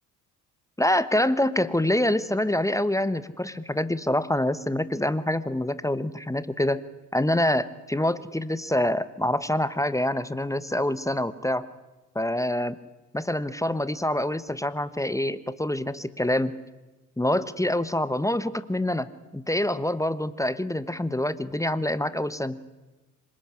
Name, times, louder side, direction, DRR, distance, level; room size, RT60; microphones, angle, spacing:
voice 1, 0.8-6.8 7.1-11.7 12.1-12.8 13.1-16.6 17.2-22.6, left 1 dB, 5° left, 15 dB, 1.1 m, -26 dB
26.0 x 18.0 x 9.9 m, 1.1 s
figure-of-eight pair, 55°, 47 cm